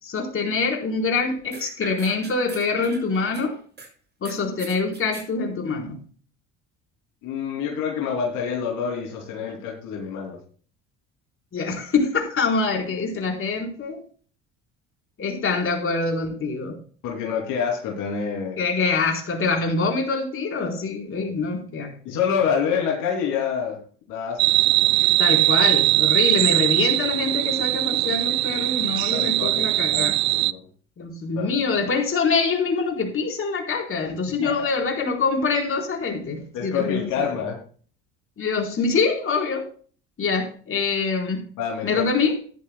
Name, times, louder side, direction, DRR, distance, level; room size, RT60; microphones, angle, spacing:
voice 1, 0.0-3.6 4.2-6.0 11.5-14.0 15.2-16.8 18.6-22.2 25.2-30.2 31.0-37.3 38.4-39.7 40.2-41.5 41.8-42.4, left 4 dB, 40° left, 4.4 m, -25 dB
sound 1, 1.5-3.9 4.2-5.3, right 3 dB, 30° right, 6.1 m, -41 dB
voice 2, 7.2-10.4 17.0-18.6 21.1-21.3 22.0-23.8 24.1-24.4 29.0-30.6 31.3-31.6 34.4-34.5 36.5-37.6 41.6-42.1, left 7 dB, 70° left, 3.0 m, -27 dB
sound 2, 24.4-30.5, right 19 dB, 60° right, 0.5 m, -20 dB
14.0 x 11.5 x 2.3 m
hypercardioid pair, 70°, 32 cm